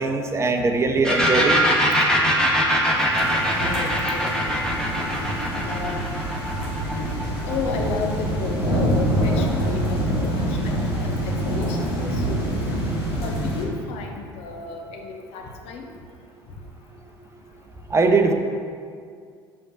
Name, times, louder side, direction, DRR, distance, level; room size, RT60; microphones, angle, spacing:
voice 1, 0.0-1.6 17.9-18.3, right 3 dB, 20° right, 4 dB, 0.8 m, -20 dB
sound 1, 1.0-8.6, equal, 5° left, 1.5 m, -22 dB
sound 2, 3.1-13.6, equal, 80° left, 1.9 m, -26 dB
voice 2, 3.6-4.4 5.5-6.1 7.4-9.8 10.1-12.8 13.2-15.9, left 4 dB, 55° left, 2 dB, 0.9 m, -33 dB
6.0 x 5.1 x 5.6 m, 2.2 s
figure-of-eight pair, 65°, 13 cm